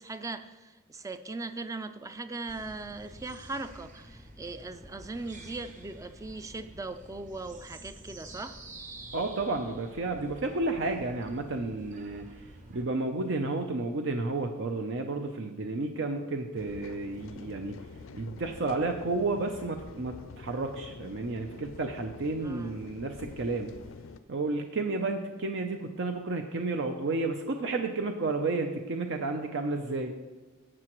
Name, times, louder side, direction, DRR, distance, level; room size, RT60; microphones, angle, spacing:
voice 1, 0.0-8.6 22.4-22.8, right 3 dB, 15° right, 10 dB, 0.4 m, -39 dB
sound 1, 2.5-12.8, right 1 dB, 40° right, 1.1 m, -49 dB
voice 2, 9.1-12.2 12.7-17.8 18.1-23.7 24.3-30.1, right 3 dB, 60° right, 4 dB, 0.6 m, -31 dB
sound 2, 16.6-24.2, left 4 dB, 70° left, 0.5 m, -47 dB
12.0 x 7.6 x 3.1 m, 1.2 s
head